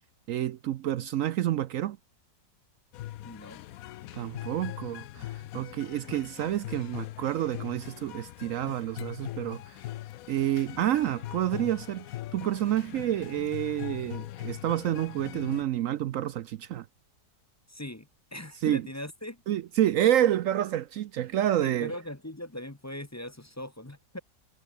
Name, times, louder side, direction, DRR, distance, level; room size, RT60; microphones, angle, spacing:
voice 1, 0.3-2.0 4.1-9.8 10.3-12.1 12.3-16.9 18.6-18.8 19.5-21.9, right 12 dB, 75° right, 0.7 m, -28 dB
sound 1, 2.9-15.6, left 14 dB, 70° left, 0.8 m, -41 dB
voice 2, 3.2-3.6 5.2-5.9 17.7-19.4 21.6-24.2, left 1 dB, 10° left, 0.9 m, -41 dB
omnidirectional pair, 1.9 m